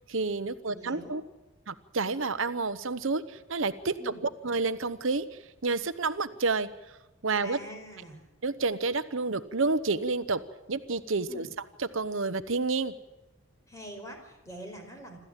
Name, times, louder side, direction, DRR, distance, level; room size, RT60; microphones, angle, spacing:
voice 1, 0.1-1.2 1.7-5.2 5.6-6.7 7.2-7.6 8.4-10.4 10.7-11.5 11.8-12.9, right 3 dB, 70° right, 13 dB, 1.0 m, -29 dB
voice 2, 0.7-1.2 4.0-4.2 7.4-8.2 11.3-11.5 13.7-15.2, equal, 15° left, 3 dB, 4.6 m, -44 dB
26.5 x 14.0 x 9.0 m, 1.0 s
head